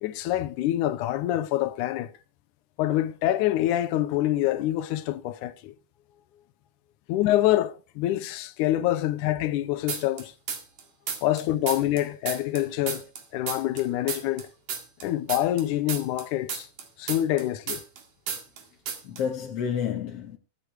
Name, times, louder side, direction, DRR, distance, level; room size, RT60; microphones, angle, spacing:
voice 1, 0.0-2.1 2.8-5.7 7.1-10.3 11.2-13.1 13.3-14.5 15.0-16.7 17.0-17.8, left 14 dB, 85° left, 2.3 m, -26 dB
voice 2, 6.1-6.5 18.7-18.8 19.0-20.4, left 8 dB, 60° left, 2.1 m, -31 dB
sound 1, 9.9-10.8 11.1-13.8 14.1-18.0 18.3-18.6 18.9-19.2, right 6 dB, 65° right, 3.3 m, -33 dB
23.0 x 8.1 x 3.3 m
omnidirectional pair, 3.6 m